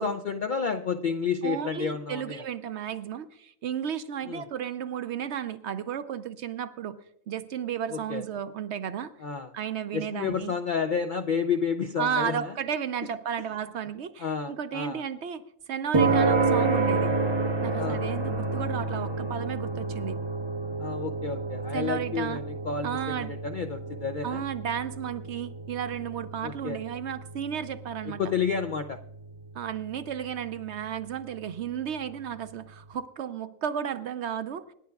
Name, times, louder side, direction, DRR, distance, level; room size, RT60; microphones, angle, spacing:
voice 1, 0.0-2.4 4.3-4.4 7.9-8.2 9.2-9.5 9.9-12.5 14.2-15.0 17.8-18.0 20.8-24.4 26.4-26.8 28.2-29.0, left 6 dB, 60° left, 8 dB, 0.5 m, -30 dB
voice 2, 1.4-7.0 7.3-9.1 9.5-10.5 12.0-17.2 17.6-20.2 21.7-22.4 22.8-23.3 24.2-28.2 29.5-34.7, right 8 dB, 65° right, 11 dB, 0.8 m, -33 dB
sound 1, 15.9-32.4, right 3 dB, 25° right, 0.7 m, -30 dB
26.0 x 10.5 x 2.3 m, 0.74 s
omnidirectional pair, 1.4 m